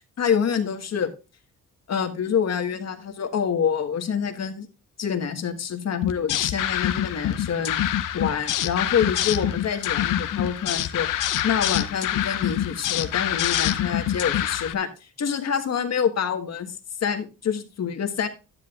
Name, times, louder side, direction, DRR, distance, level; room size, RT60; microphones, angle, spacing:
voice 1, 0.2-1.1 1.9-4.7 5.0-7.8 8.1-11.1 11.4-16.7 17.0-18.3, left 7 dB, 55° left, 6 dB, 1.6 m, -26 dB
sound 1, 6.0-14.7, left 11 dB, 80° left, 0.8 m, -26 dB
12.0 x 10.0 x 2.5 m, 0.29 s
cardioid pair, 90°, 32 cm